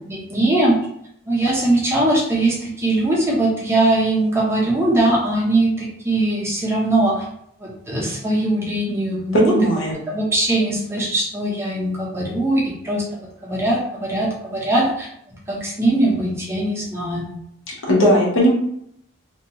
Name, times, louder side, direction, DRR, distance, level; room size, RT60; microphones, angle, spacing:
voice 1, 0.1-0.8 1.3-7.2 7.6-9.6 10.1-15.1 15.5-17.4, right 1 dB, 10° right, -4 dB, 0.5 m, -21 dB
voice 2, 9.3-9.9 17.7-18.5, equal, 70° left, -3 dB, 0.9 m, -17 dB
2.7 x 2.2 x 2.8 m, 0.70 s
head